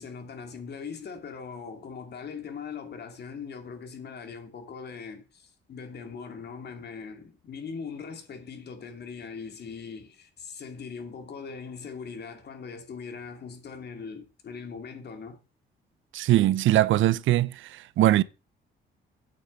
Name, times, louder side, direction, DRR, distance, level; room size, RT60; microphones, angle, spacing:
voice 1, 0.0-15.4, left 5 dB, 55° left, 2.8 m, -40 dB
voice 2, 16.1-18.2, right 14 dB, 75° right, 0.6 m, -22 dB
8.9 x 6.6 x 7.7 m
cardioid pair, 90°, 20 cm